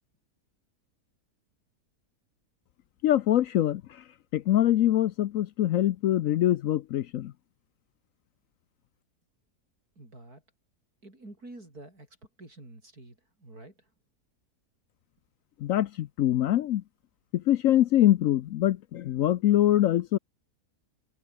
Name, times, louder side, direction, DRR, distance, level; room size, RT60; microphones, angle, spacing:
voice 1, 3.0-4.0 4.3-7.3 15.6-16.8 17.3-20.2, left 13 dB, 65° left, 0.9 m, -24 dB
voice 2, 10.0-10.4 11.0-12.1 12.4-13.9, right 2 dB, 70° right, 8.1 m, -48 dB
omnidirectional pair, 1.7 m